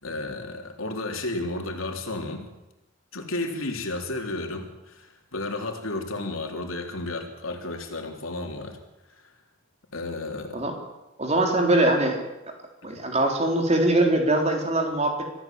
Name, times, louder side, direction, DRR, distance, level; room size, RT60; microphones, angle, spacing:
voice 1, 0.0-2.4 3.1-8.8 9.2-9.3 9.9-10.6 12.8-12.9, left 2 dB, 90° left, 3 dB, 3.5 m, -32 dB
voice 2, 11.2-12.2 12.8-15.3, right 1 dB, 30° right, 2 dB, 3.6 m, -22 dB
24.5 x 15.0 x 7.6 m, 0.97 s
head